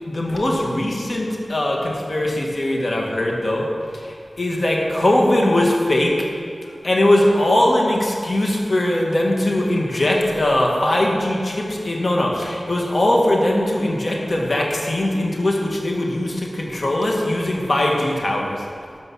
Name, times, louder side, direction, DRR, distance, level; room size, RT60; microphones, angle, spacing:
voice 1, 0.0-3.7 3.9-6.2 6.8-18.6, left 1 dB, 55° left, -1 dB, 1.8 m, -20 dB
13.0 x 5.3 x 6.3 m, 2.4 s
wide cardioid pair, 60°, 0 cm